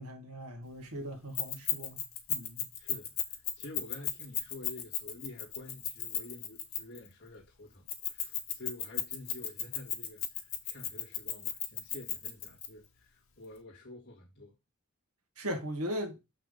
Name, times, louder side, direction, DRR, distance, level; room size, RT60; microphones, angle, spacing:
voice 1, 0.0-2.7 15.4-16.2, equal, 80° right, 2.0 m, -39 dB
Keys jangling, 1.3-7.1 7.9-12.7, left 10 dB, 65° left, 2.1 m, -34 dB
voice 2, 2.8-14.6, left 2 dB, 50° left, 2.4 m, -49 dB
7.1 x 5.8 x 5.4 m
head